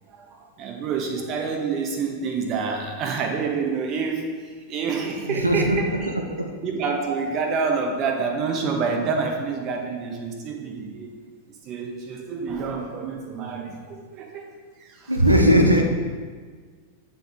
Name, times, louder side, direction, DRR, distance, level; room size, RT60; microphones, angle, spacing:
voice 1, 0.1-6.1 6.6-11.1 11.6-14.4 14.8-15.1, right 5 dB, 35° right, 3 dB, 1.1 m, -28 dB
voice 2, 5.3-6.0 6.3-6.5 15.1-15.8, equal, 85° right, 3 dB, 0.8 m, -18 dB
9.4 x 4.3 x 3.6 m, 1.6 s
figure-of-eight pair, 90°, 0 cm